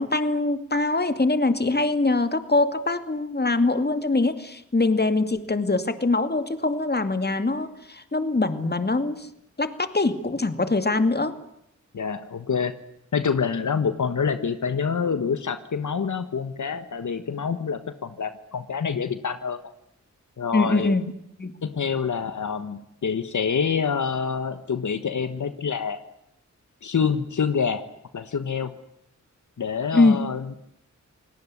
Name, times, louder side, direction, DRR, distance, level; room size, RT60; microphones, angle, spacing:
voice 1, 0.0-9.3 9.6-11.4 20.5-21.0 21.4-21.5 29.9-30.3, left 2 dB, 35° left, 10 dB, 2.5 m, -23 dB
voice 2, 11.9-12.7 13.1-19.6 20.4-20.9 21.6-26.0 26.8-27.8 28.1-28.7 29.6-30.5, left 6 dB, 75° left, 11 dB, 1.4 m, -26 dB
28.5 x 18.5 x 9.8 m, 0.79 s
cardioid pair, 55°, 31 cm